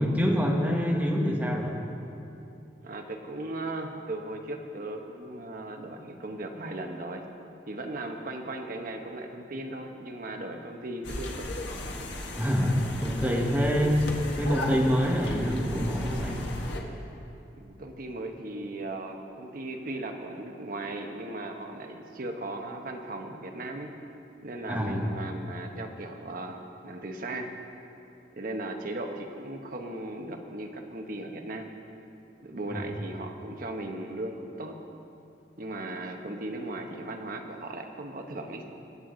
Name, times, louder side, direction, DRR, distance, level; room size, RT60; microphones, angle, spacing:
voice 1, 0.0-1.7 12.4-14.0 14.4-16.4 24.7-25.1 32.7-32.8, equal, 10° right, -1 dB, 1.4 m, -26 dB
voice 2, 2.8-7.2 7.7-11.5 11.9-12.1 17.6-23.9 24.4-27.5 28.4-31.7 32.4-34.8 35.6-38.7, right 2 dB, 55° right, 4 dB, 1.0 m, -37 dB
sound 1, 11.0-16.8, left 1 dB, 85° left, 1.4 m, -35 dB
22.0 x 7.9 x 3.9 m, 2.8 s
head